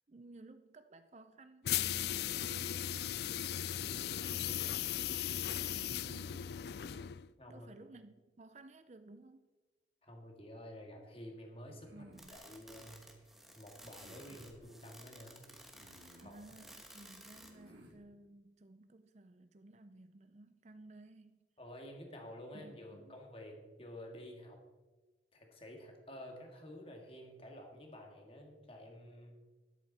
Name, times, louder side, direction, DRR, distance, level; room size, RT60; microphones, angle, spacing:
voice 1, 0.0-5.3 5.6-6.6 7.5-9.5 11.9-12.4 16.2-21.4 22.5-23.2, right 2 dB, 35° right, 0.5 m, -56 dB
sound 1, 1.6-7.3, left 11 dB, 60° left, 0.3 m, -37 dB
voice 2, 7.4-7.7 10.0-12.0 12.3-13.3 13.5-15.5 16.1-16.4 21.6-24.6 25.3-29.4, equal, 30° left, 2.2 m, -51 dB
sound 2, 11.6-12.3 13.9-14.6 15.7-16.5 17.4-18.0, equal, 80° right, 3.0 m, -60 dB
sound 3, 12.1-17.7, equal, ahead, 1.3 m, -55 dB
13.0 x 11.5 x 4.3 m
head